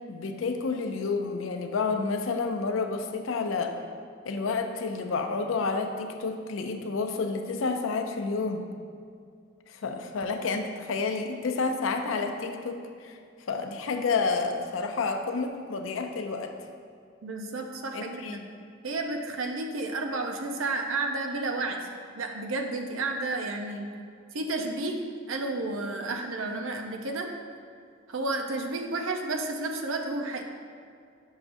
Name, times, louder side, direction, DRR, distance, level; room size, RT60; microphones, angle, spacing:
voice 1, 0.1-3.8 4.2-8.7 9.7-12.8 13.0-13.2 13.5-16.5 17.9-18.5, left 4 dB, 85° left, 5 dB, 0.5 m, -30 dB
voice 2, 17.2-18.4 18.8-21.8 22.2-23.9 24.3-25.0 25.3-27.3 28.1-30.4, right 2 dB, 85° right, 3 dB, 0.6 m, -31 dB
6.5 x 6.0 x 2.6 m, 2.3 s
head